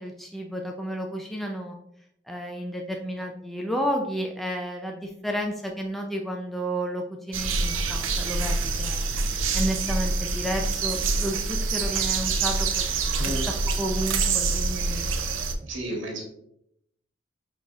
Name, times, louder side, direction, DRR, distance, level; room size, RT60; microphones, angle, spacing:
voice 1, 0.0-1.7 2.3-9.1 9.5-12.8 13.8-15.1, equal, ahead, 1 dB, 0.3 m, -31 dB
sound 1, 7.3-15.5, right 4 dB, 90° right, 0.5 m, -26 dB
voice 2, 15.6-16.2, right 1 dB, 75° right, -1 dB, 1.4 m, -32 dB
5.6 x 3.9 x 2.4 m, 0.76 s
head